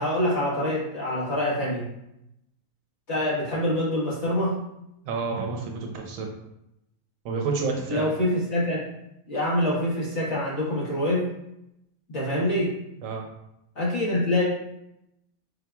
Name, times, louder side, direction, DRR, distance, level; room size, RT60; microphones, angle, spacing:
voice 1, 0.0-1.9 3.1-4.6 7.9-8.8 9.3-11.3 12.1-12.7 13.7-14.4, left 1 dB, 50° left, -8 dB, 1.5 m, -25 dB
voice 2, 5.1-6.3 7.2-8.1 13.0-13.2, right 4 dB, 70° right, 2 dB, 0.9 m, -29 dB
4.4 x 2.8 x 2.3 m, 0.84 s
omnidirectional pair, 1.5 m